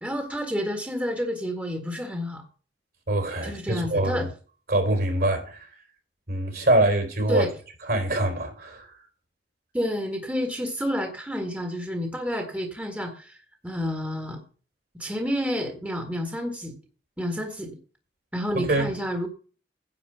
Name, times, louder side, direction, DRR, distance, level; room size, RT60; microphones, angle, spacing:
voice 1, 0.0-2.4 3.4-4.3 7.3-7.5 9.7-13.4 13.6-14.4 15.0-16.7 17.2-17.8 18.3-19.3, equal, 10° right, 1.7 m, -29 dB
voice 2, 3.1-4.2 4.7-5.6 6.3-7.4 7.8-8.9 18.5-18.9, right 1 dB, 60° right, 4.0 m, -24 dB
10.5 x 4.8 x 8.0 m
head